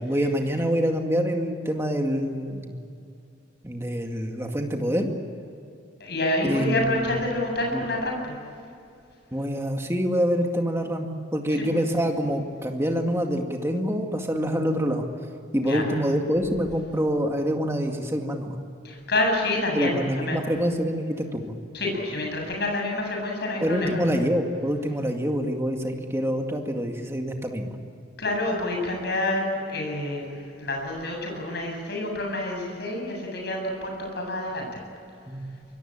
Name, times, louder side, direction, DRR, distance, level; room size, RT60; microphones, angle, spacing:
voice 1, 0.0-2.7 3.6-5.1 6.4-7.1 7.7-7.8 9.3-15.1 15.5-18.5 19.7-21.5 23.6-27.7 35.3-35.5, equal, 15° right, 3 dB, 2.2 m, -26 dB
voice 2, 6.0-8.4 11.6-11.8 15.6-15.9 18.8-20.4 21.7-24.0 28.2-34.8, left 2 dB, 55° left, 1 dB, 7.8 m, -28 dB
25.0 x 22.0 x 8.9 m, 2.5 s
head